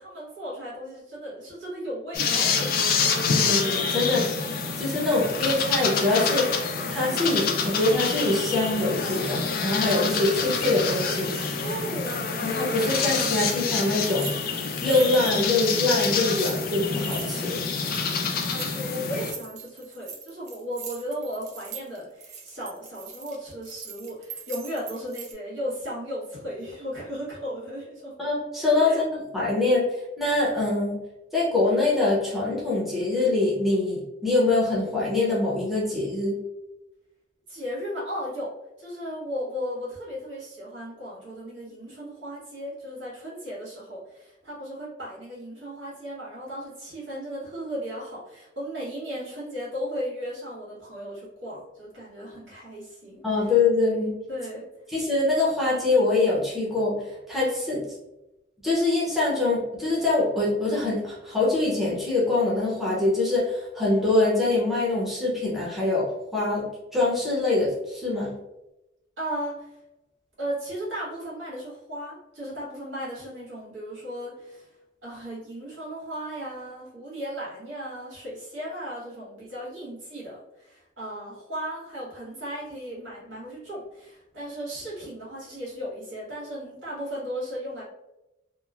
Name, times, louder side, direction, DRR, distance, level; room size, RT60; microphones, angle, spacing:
voice 1, 0.0-2.7 11.6-12.3 18.3-28.1 28.8-29.0 37.5-38.5 38.8-53.5 54.3-54.6 69.2-69.7 70.4-74.7 75.0-87.8, equal, 80° right, -7 dB, 1.4 m, -36 dB
sound 1, 2.1-19.3, left 5 dB, 50° left, 0.4 m, -27 dB
voice 2, 3.3-4.3 4.8-6.5 6.9-11.3 12.4-14.3 14.8-17.6 28.2-29.1 29.3-29.9 30.2-31.0 31.3-36.3 53.2-54.1 54.9-57.8 58.6-68.3, left 2 dB, ahead, -7 dB, 0.7 m, -24 dB
sound 2, 7.4-9.5 9.8-12.2 12.5-25.3, right 6 dB, 40° right, 0.4 m, -42 dB
3.0 x 2.0 x 2.3 m, 0.95 s
head